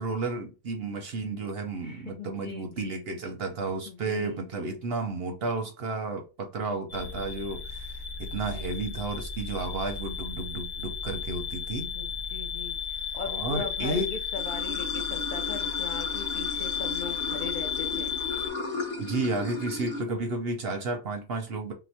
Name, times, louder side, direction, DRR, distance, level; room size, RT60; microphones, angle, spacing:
voice 1, 0.0-11.9 13.2-14.1 19.0-21.7, right 3 dB, 55° right, 0.7 m, -32 dB
voice 2, 1.8-3.1 3.8-4.4 8.5-8.8 11.9-18.1, left 5 dB, 70° left, 0.4 m, -40 dB
sound 1, 6.9-18.5, left 7 dB, 30° left, 0.8 m, -33 dB
Water / Sink (filling or washing), 14.4-20.0, left 1 dB, 45° left, 1.1 m, -36 dB
2.9 x 2.1 x 4.0 m
omnidirectional pair, 1.5 m